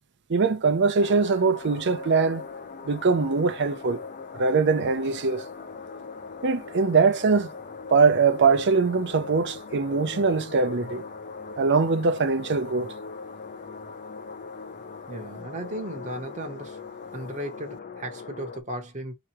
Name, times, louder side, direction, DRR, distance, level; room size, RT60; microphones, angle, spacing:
voice 1, 0.3-2.4 2.8-4.0 4.3-5.5 6.4-7.5 7.9-11.0 11.6-12.9, right 4 dB, 55° right, 0.6 m, -22 dB
sound 1, 1.0-18.6, left 4 dB, 40° left, 0.6 m, -40 dB
voice 2, 15.1-16.8 17.1-19.1, right 1 dB, 35° right, 0.9 m, -35 dB
4.7 x 3.0 x 3.0 m
head